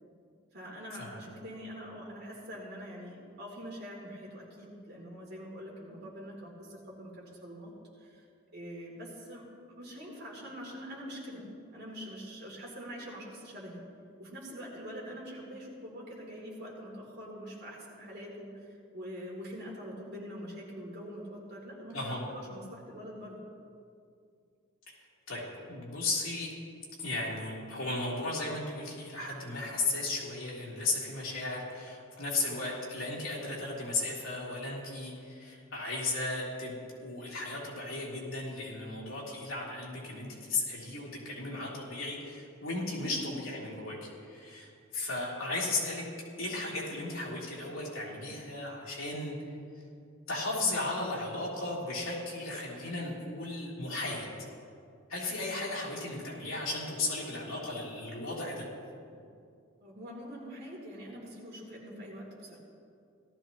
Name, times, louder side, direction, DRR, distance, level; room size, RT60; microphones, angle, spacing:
voice 1, 0.5-7.7 8.0-8.2 8.5-9.4 9.8-11.4 11.7-13.9 14.2-23.4 43.0-43.3 59.8-62.6, equal, 50° right, -4 dB, 3.1 m, -44 dB
voice 2, 25.3-26.5 27.0-46.1 46.4-49.4 50.3-54.3 55.1-58.7, left 2 dB, 70° left, -5 dB, 3.4 m, -35 dB
18.0 x 13.5 x 3.0 m, 2.4 s
head